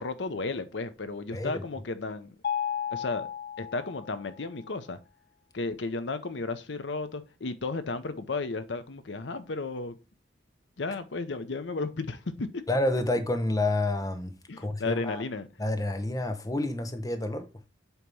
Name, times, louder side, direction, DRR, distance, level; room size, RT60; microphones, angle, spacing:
voice 1, 0.0-2.3 2.9-3.3 3.6-5.0 5.5-10.0 10.8-12.6 14.5-15.5, left 3 dB, 80° left, 0.8 m, -33 dB
voice 2, 1.3-1.6 12.7-15.2 15.6-17.5, left 2 dB, 20° left, 0.8 m, -29 dB
Mallet percussion, 2.4-4.4, left 8 dB, 55° left, 0.4 m, -33 dB
8.0 x 3.0 x 5.4 m
head